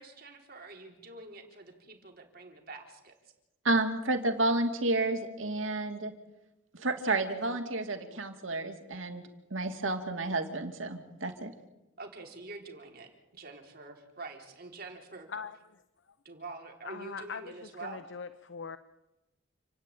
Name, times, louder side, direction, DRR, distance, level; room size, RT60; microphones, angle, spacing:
voice 1, 0.0-3.1 12.0-15.3 16.2-18.0, right 3 dB, 50° right, 2 dB, 4.0 m, -46 dB
voice 2, 3.6-6.1 6.7-9.2 9.5-11.5, right 2 dB, 85° right, 5 dB, 2.6 m, -31 dB
voice 3, 16.8-18.8, left 5 dB, 65° left, 12 dB, 0.8 m, -41 dB
29.5 x 10.0 x 9.2 m, 0.97 s
head